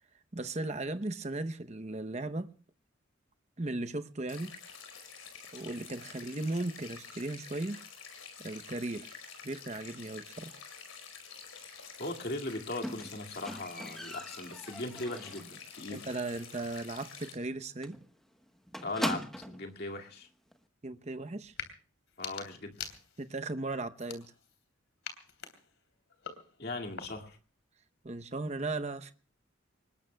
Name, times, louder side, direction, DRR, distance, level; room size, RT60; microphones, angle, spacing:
voice 1, 0.3-2.5 3.6-4.5 5.5-7.8 8.4-9.2 9.4-10.6 15.9-18.0 20.8-21.5 23.2-24.3 28.0-29.1, right 2 dB, 30° right, 0.8 m, -37 dB
sound 1, 4.3-17.3, left 6 dB, 90° left, 5.1 m, -49 dB
voice 2, 12.0-16.1 18.8-20.3 22.2-22.7 26.6-27.4, left 2 dB, 50° left, 2.2 m, -39 dB
Squeak, 12.8-15.6 15.9-16.3 16.6-16.7 17.1-17.2 17.4-17.6 17.8-19.7 20.5-20.6, equal, ahead, 1.1 m, -39 dB
sound 2, 21.4-21.7 22.1-23.4 24.0-24.6 25.0-27.4, left 7 dB, 65° left, 3.0 m, -45 dB
25.5 x 20.5 x 2.2 m
head